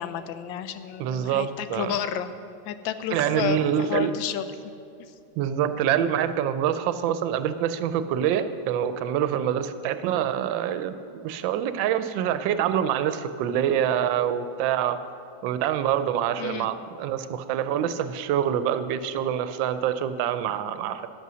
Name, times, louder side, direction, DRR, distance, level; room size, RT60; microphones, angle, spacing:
voice 1, 0.0-2.3 2.7-4.5 16.4-16.7, left 9 dB, 85° left, 11 dB, 1.4 m, -31 dB
voice 2, 1.0-1.9 3.1-4.1 5.4-15.0 15.4-21.1, right 9 dB, 85° right, 11 dB, 1.3 m, -26 dB
11.0 x 8.3 x 6.1 m, 2.6 s
omnidirectional pair, 2.0 m